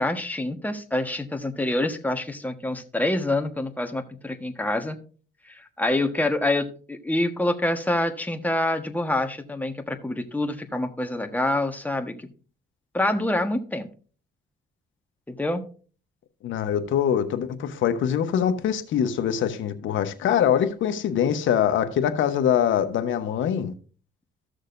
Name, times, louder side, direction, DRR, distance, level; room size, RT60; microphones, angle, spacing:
voice 1, 0.0-5.0 5.5-12.1 12.9-13.9 15.3-15.6, left 1 dB, 10° left, 1.3 m, -26 dB
voice 2, 16.4-23.7, left 9 dB, 75° left, 1.1 m, -23 dB
14.5 x 6.5 x 2.6 m
cardioid pair, 90°, 20 cm